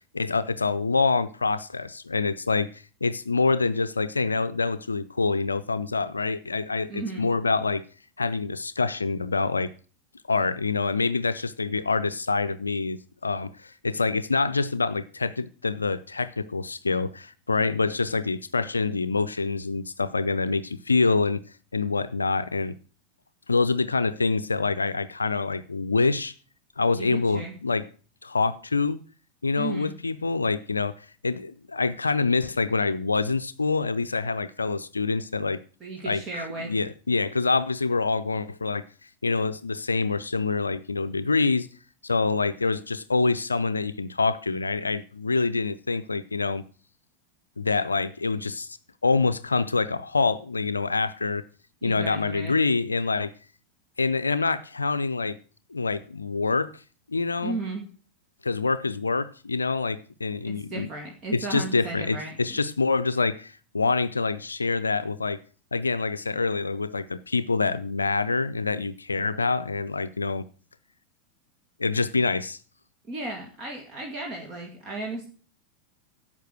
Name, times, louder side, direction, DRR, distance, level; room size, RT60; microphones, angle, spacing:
voice 1, 0.1-2.7 3.0-7.8 8.2-9.7 10.3-21.4 21.7-22.7 23.5-26.3 26.8-27.8 28.2-29.0 29.4-30.9 31.2-35.6 36.0-38.8 39.2-41.7 42.0-46.6 47.6-48.8 49.0-51.4 51.8-53.3 54.0-55.4 55.7-56.7 57.1-57.6 58.4-60.9 61.3-65.4 65.7-70.4 71.8-72.6, left 4 dB, 80° left, 13 dB, 0.5 m, -26 dB
voice 2, 6.9-7.3 26.9-27.5 29.5-29.9 35.8-36.7 51.8-52.6 57.4-57.8 60.5-62.6 73.1-75.3, right 3 dB, 30° right, 1 dB, 2.3 m, -35 dB
11.5 x 7.4 x 6.2 m, 0.40 s
figure-of-eight pair, 90°, 0 cm